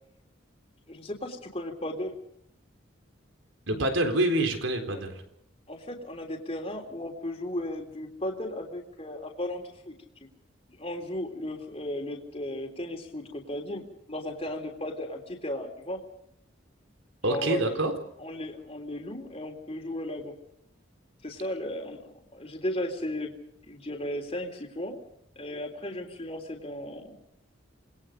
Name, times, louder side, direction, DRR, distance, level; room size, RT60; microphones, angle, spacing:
voice 1, 0.9-2.2 4.9-5.0 5.7-9.9 10.7-16.0 17.2-17.8 18.2-20.3 21.2-23.3 23.7-25.0 25.4-27.3, left 1 dB, 30° left, 2 dB, 3.6 m, -35 dB
voice 2, 3.7-5.2 17.2-17.9, right 1 dB, 80° right, 6 dB, 3.9 m, -26 dB
27.5 x 21.0 x 5.2 m, 0.76 s
head